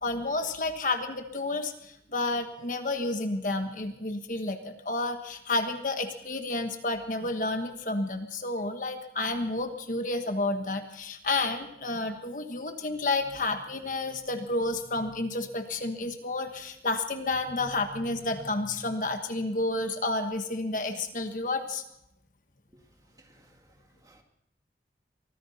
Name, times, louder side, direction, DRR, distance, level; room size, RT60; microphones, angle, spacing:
voice 1, 0.0-21.8, left 2 dB, 50° left, 1.4 m, -30 dB
voice 2, 22.7-24.2, right 1 dB, 20° right, 2.1 m, -61 dB
23.5 x 14.5 x 4.2 m
head